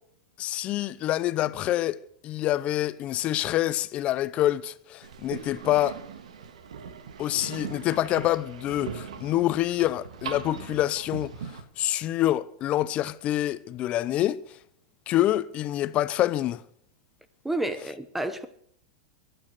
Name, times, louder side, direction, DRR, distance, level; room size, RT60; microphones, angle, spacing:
voice 1, 0.4-2.0 2.2-6.0 7.2-11.3 11.8-14.4 15.1-16.6, left 13 dB, 35° left, 0.7 m, -26 dB
sound 1, 5.0-11.6, right 7 dB, 85° right, 1.9 m, -40 dB
voice 2, 17.4-18.5, right 1 dB, 5° right, 0.8 m, -30 dB
22.5 x 9.1 x 6.6 m
hypercardioid pair, 130°, 3 cm